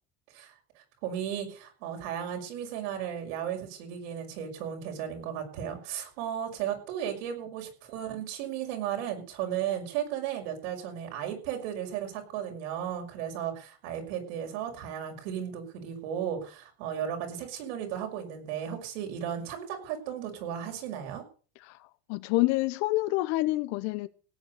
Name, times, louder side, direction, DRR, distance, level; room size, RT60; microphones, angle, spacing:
voice 1, 1.0-21.2, right 9 dB, 75° right, 6.0 m, -35 dB
voice 2, 22.1-24.1, left 19 dB, 55° left, 0.8 m, -27 dB
17.5 x 9.1 x 6.7 m
cardioid pair, 160°, 32 cm